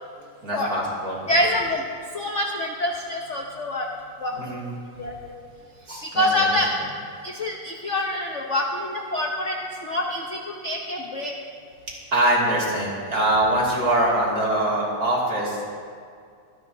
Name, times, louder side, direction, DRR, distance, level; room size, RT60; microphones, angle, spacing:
voice 1, 0.4-1.3 4.3-4.6 5.9-6.6 12.1-15.8, right 1 dB, 40° right, -5 dB, 2.9 m, -23 dB
voice 2, 1.3-1.8 2.1-3.9 4.2-4.5 5.0-5.3 6.0-6.7 7.2-11.3, left 1 dB, 50° left, 0 dB, 0.9 m, -26 dB
24.5 x 10.0 x 2.7 m, 2.3 s
omnidirectional pair, 2.4 m